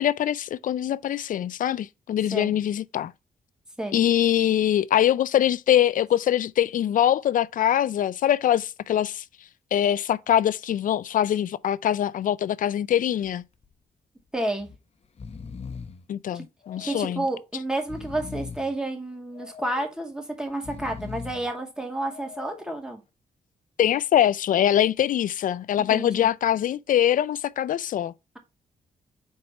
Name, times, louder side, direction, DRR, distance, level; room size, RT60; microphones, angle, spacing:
voice 1, 0.0-3.1 3.9-9.2 9.7-13.4 16.1-17.3 23.8-28.1, left 11 dB, 65° left, 0.4 m, -23 dB
Breathing, 13.0-13.3 13.6-13.7 14.6-14.8 15.0-16.1 16.6-17.3 17.7-18.8 19.3-20.0 20.5-21.5 22.1-22.7, left 5 dB, 45° left, 0.8 m, -40 dB
voice 2, 14.3-14.7 16.3-16.4 16.8-23.0 25.8-26.3, right 1 dB, 5° right, 2.2 m, -30 dB
4.7 x 4.2 x 5.9 m
cardioid pair, 75°, 15 cm